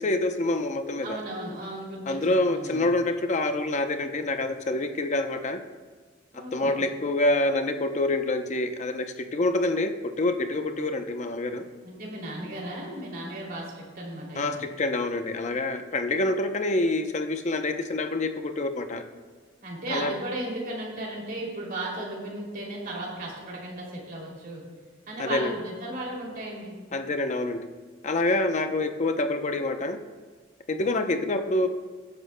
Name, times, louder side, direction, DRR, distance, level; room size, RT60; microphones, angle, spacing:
voice 1, 0.0-1.2 2.1-5.6 6.5-9.9 10.2-11.6 14.4-19.0 19.9-20.1 25.2-25.5 26.9-27.6 28.0-30.0 30.7-31.7, left 2 dB, 40° left, 7 dB, 0.7 m, -26 dB
voice 2, 1.0-2.9 6.3-6.8 11.8-14.6 19.6-24.6 25.1-26.8, right 1 dB, 50° right, -2 dB, 2.8 m, -35 dB
19.5 x 10.0 x 2.2 m, 1.5 s
head